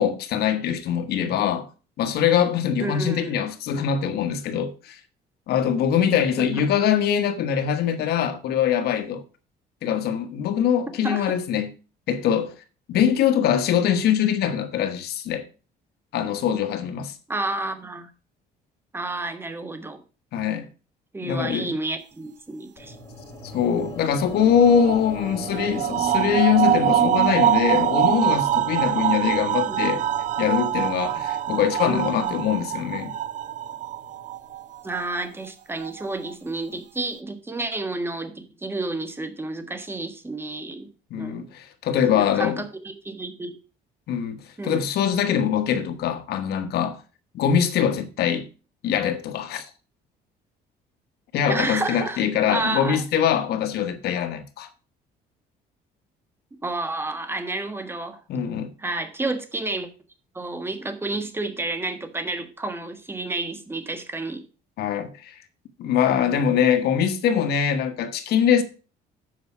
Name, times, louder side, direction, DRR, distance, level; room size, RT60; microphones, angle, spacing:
voice 1, 0.0-1.7 2.0-5.0 5.5-9.2 9.8-11.7 12.1-12.5 12.9-15.5 16.1-17.1 20.3-20.7 21.2-21.7 23.5-30.0 30.4-33.1 41.1-42.6 44.1-47.0 47.3-48.5 48.8-49.7 51.3-54.7 58.3-58.7 64.8-65.3 65.8-68.6, left 8 dB, 70° left, 1.3 m, -23 dB
voice 2, 2.8-3.4 11.0-11.3 17.3-18.1 18.9-20.0 21.1-23.0 29.7-29.8 31.8-32.4 34.8-40.9 41.2-41.5 42.1-43.6 44.6-44.8 51.5-52.2 52.5-53.0 56.6-58.2 58.8-59.9 60.3-64.4 67.3-67.5, right 2 dB, 15° right, 1.4 m, -30 dB
sound 1, 22.8-35.0, left 1 dB, 20° left, 4.3 m, -40 dB
sound 2, 24.4-35.2 35.8-36.3, right 11 dB, 50° right, 0.4 m, -24 dB
8.0 x 5.4 x 6.0 m
cardioid pair, 110°, 17 cm